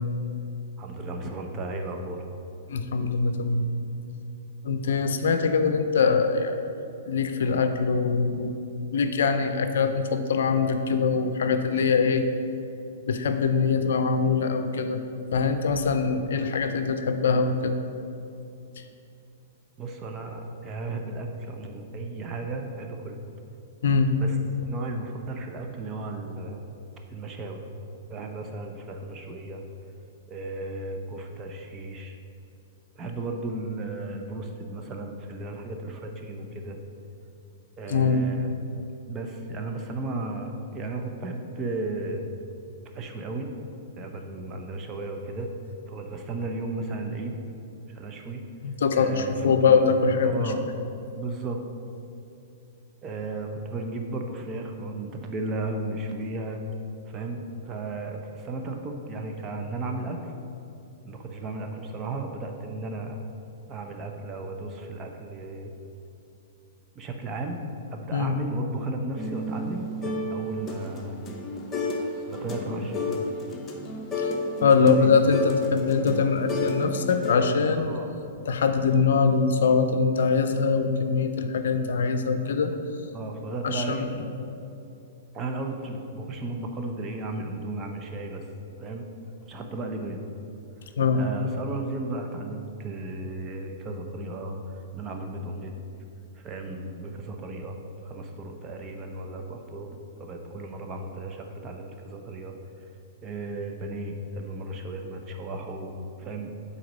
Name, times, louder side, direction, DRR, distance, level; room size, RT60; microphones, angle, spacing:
voice 1, 0.8-2.3 19.8-23.2 24.2-24.4 24.6-26.6 27.1-27.6 28.1-29.6 30.3-32.2 32.9-36.8 37.8-38.5 39.1-42.3 42.9-43.5 44.0-45.5 45.9-47.4 47.9-48.4 48.9-49.9 50.2-50.7 51.1-51.6 53.0-56.6 57.1-60.2 61.0-63.2 63.7-65.7 66.9-67.6 67.9-71.2 72.3-73.1 74.8-75.1 77.7-78.1 83.1-84.1 85.3-88.4 88.8-89.0 89.5-90.2 90.8-95.8 96.4-97.8 98.0-102.5 103.2-105.9 106.2-106.6, right 2 dB, 25° right, 3 dB, 0.8 m, -35 dB
voice 2, 2.7-3.7 4.6-6.6 7.1-8.6 8.9-12.2 13.1-15.0 15.3-17.8 23.8-24.1 37.9-38.2 48.6-50.5 68.1-68.4 74.6-77.9 78.4-82.7 83.6-84.3 91.0-91.2, left 5 dB, 70° left, 7 dB, 0.5 m, -23 dB
sound 1, 69.2-72.1 72.3-77.5, left 2 dB, 20° left, 0.9 m, -32 dB
7.7 x 4.2 x 5.3 m, 2.7 s
hypercardioid pair, 115°, 0 cm